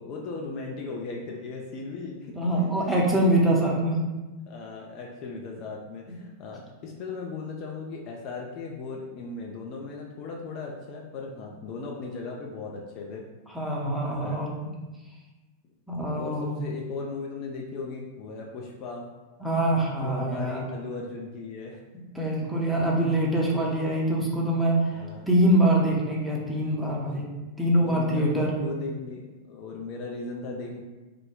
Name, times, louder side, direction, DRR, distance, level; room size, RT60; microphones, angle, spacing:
voice 1, 0.0-3.0 3.7-3.8 4.5-13.3 14.2-14.4 16.0-19.1 20.0-21.8 22.4-22.5 22.9-23.1 24.9-25.3 27.8-30.8, left 3 dB, 40° left, -1 dB, 0.3 m, -37 dB
voice 2, 2.4-4.0 6.1-6.2 13.5-14.7 15.9-16.5 19.4-20.7 22.1-27.2 27.6-28.5, right 1 dB, ahead, -4 dB, 0.6 m, -24 dB
2.4 x 2.1 x 3.5 m, 1.2 s
figure-of-eight pair, 90°, 0 cm